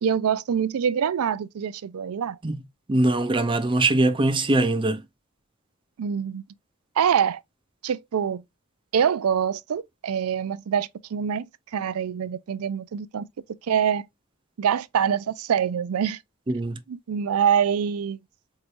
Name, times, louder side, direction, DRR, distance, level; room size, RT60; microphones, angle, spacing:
voice 1, 0.0-2.4 6.0-6.4 7.0-7.4 7.8-8.4 8.9-11.5 11.7-13.2 13.7-14.0 14.6-16.2 16.9-18.2, right 8 dB, 85° right, 0.4 m, -25 dB
voice 2, 2.9-5.0 16.5-16.8, right 2 dB, 25° right, 0.5 m, -22 dB
4.6 x 3.1 x 2.4 m
head